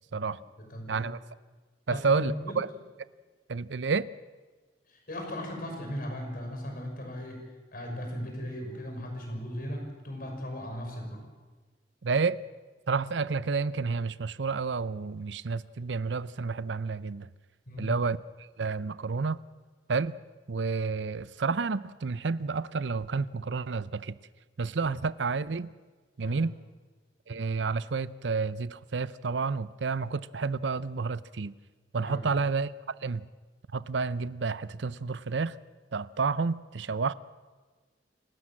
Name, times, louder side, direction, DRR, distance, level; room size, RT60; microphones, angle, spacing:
voice 1, 0.1-1.1 1.9-2.6 4.9-7.5 7.7-11.3 17.7-17.9 26.2-26.4 32.0-32.3, equal, 55° left, 6.2 m, -37 dB
voice 2, 0.9-1.2 1.9-2.7 3.5-4.1 12.0-12.4 12.9-17.3 17.8-18.2 18.6-19.4 19.9-20.2 20.5-24.1 24.6-25.7 26.2-26.6 27.3-31.5 31.9-32.7 33.0-33.2 33.7-35.6 35.9-37.1, right 4 dB, 85° right, 0.6 m, -30 dB
29.0 x 12.5 x 7.6 m
head